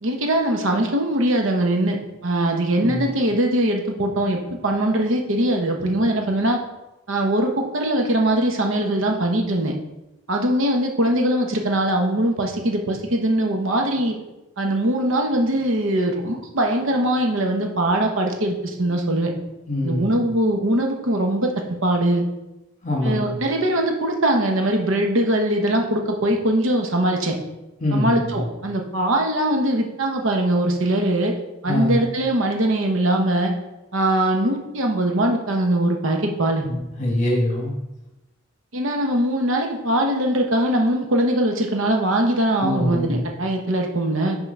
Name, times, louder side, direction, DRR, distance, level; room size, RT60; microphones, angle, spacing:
voice 1, 0.0-6.6 7.1-9.7 10.3-14.1 14.6-19.3 19.8-21.5 21.8-22.2 23.0-27.4 27.9-31.3 31.6-33.5 33.9-36.7 38.7-44.4, right 1 dB, 65° right, 2 dB, 0.9 m, -21 dB
voice 2, 19.7-20.1 22.8-23.4 27.8-28.3 31.7-32.0 36.7-37.7 42.6-43.2, left 1 dB, 35° left, -1 dB, 1.4 m, -23 dB
5.8 x 3.6 x 5.4 m, 0.98 s
head